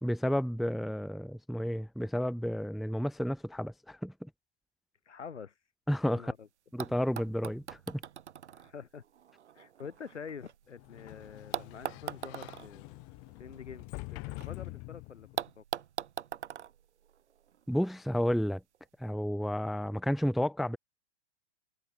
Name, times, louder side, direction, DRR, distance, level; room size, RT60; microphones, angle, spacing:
voice 1, 0.0-4.3 5.9-6.3 6.7-8.0 17.7-18.6 19.0-20.8, equal, ahead, 0.6 m, -31 dB
voice 2, 5.0-5.5 6.1-6.5 8.5-9.0 9.5-12.9 13.4-15.3 15.5-15.6, left 6 dB, 85° left, 3.3 m, -46 dB
sound 1, 6.3-6.4 6.8-10.9 11.5-14.5 14.8-14.9 15.4-17.8 18.7-18.8, right 9 dB, 75° right, 1.4 m, -42 dB
Sliding door, 10.7-15.5, left 30 dB, 40° left, 4.6 m, -45 dB
hypercardioid pair, 110°, 35 cm